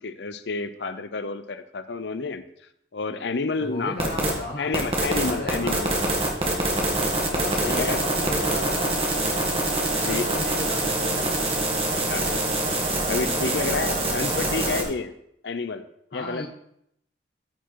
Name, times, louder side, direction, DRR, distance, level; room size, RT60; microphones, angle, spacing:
voice 1, 0.0-2.4 2.9-6.0 7.6-8.0 10.0-10.3 12.1-12.4 13.0-15.1 15.4-15.9 16.1-16.5, left 4 dB, 70° left, 12 dB, 0.7 m, -30 dB
voice 2, 3.6-4.7 5.2-6.1 7.3-9.0 9.8-11.3 16.1-16.5, left 1 dB, 55° left, -1 dB, 1.1 m, -34 dB
sound 1, 4.0-4.3 4.7-14.8, right 1 dB, 30° right, 1.8 m, -25 dB
14.0 x 4.7 x 4.7 m, 0.74 s
head